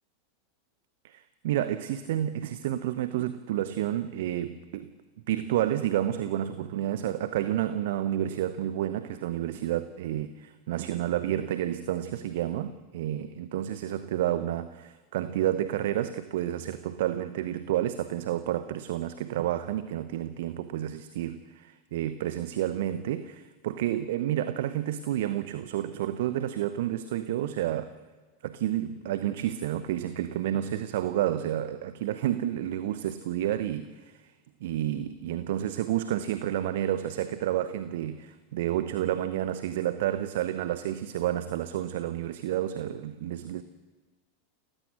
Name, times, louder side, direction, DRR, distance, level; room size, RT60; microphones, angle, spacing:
voice 1, 1.0-4.9 5.3-27.9 28.4-34.3 34.6-43.6, right 12 dB, 60° right, 0.9 m, -30 dB
29.5 x 15.5 x 6.3 m
figure-of-eight pair, 90°, 0 cm